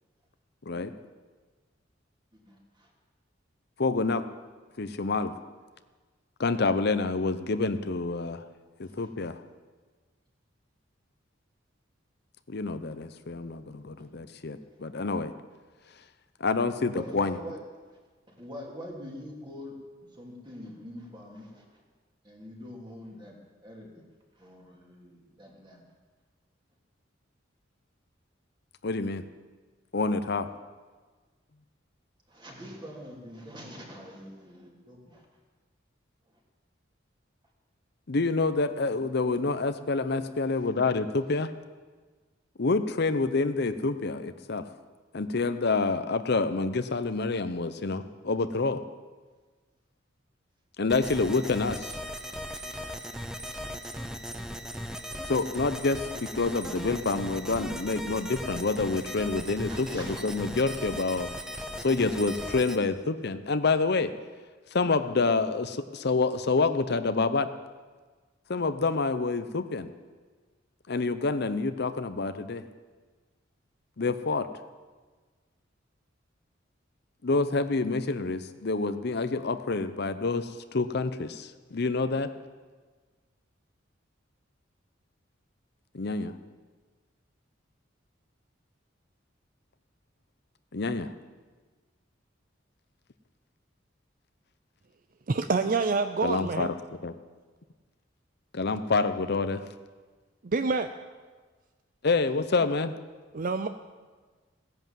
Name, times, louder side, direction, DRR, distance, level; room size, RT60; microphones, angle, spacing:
voice 1, 2.5-2.9 8.8-9.1 14.0-14.1 16.9-17.6 18.3-19.7 20.1-21.8 22.2-23.4 23.6-24.0 24.4-25.8 32.3-35.2 40.5-40.7 59.7-60.2, equal, 25° right, -2 dB, 3.3 m, -44 dB
voice 2, 3.8-4.2 4.8-5.3 6.4-8.4 8.8-9.4 12.5-15.3 16.4-17.4 28.8-29.2 29.9-30.5 38.1-41.5 42.6-44.7 45.1-48.8 50.8-51.9 55.3-61.3 61.8-64.1 64.7-67.5 68.5-69.9 70.9-72.6 74.0-74.5 77.2-82.3 85.9-86.3 90.7-91.1 96.2-96.7 97.0-97.1 98.5-99.6 102.0-102.9, left 3 dB, 60° left, 11 dB, 0.7 m, -27 dB
sound 1, 50.9-62.8, equal, 5° right, 0.9 m, -38 dB
voice 3, 95.3-96.7 100.4-100.9 103.3-103.7, right 4 dB, 45° right, 9 dB, 0.5 m, -27 dB
17.0 x 11.0 x 7.5 m, 1.4 s
head